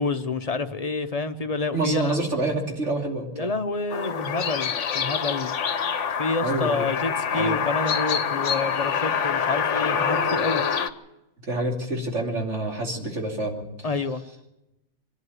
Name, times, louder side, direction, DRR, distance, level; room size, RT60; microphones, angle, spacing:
voice 1, 0.0-2.2 3.3-5.6 6.2-10.6 13.8-14.2, left 3 dB, 35° left, 9 dB, 0.7 m, -28 dB
voice 2, 1.7-3.5 6.4-6.9 7.3-7.6 11.5-13.6, right 2 dB, 55° right, 0 dB, 3.3 m, -27 dB
sound 1, 3.9-10.9, left 7 dB, 60° left, 1.1 m, -26 dB
25.0 x 11.0 x 9.3 m, 0.94 s
omnidirectional pair, 1.5 m